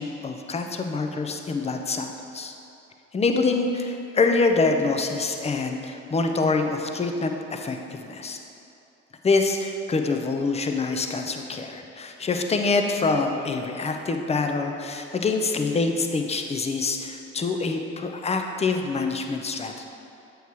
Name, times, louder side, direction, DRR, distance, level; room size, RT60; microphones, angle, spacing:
voice 1, 0.0-2.5 3.1-8.4 9.2-19.9, left 3 dB, 15° left, 4 dB, 0.5 m, -25 dB
7.9 x 3.1 x 4.7 m, 2.8 s
hypercardioid pair, 50°, 37 cm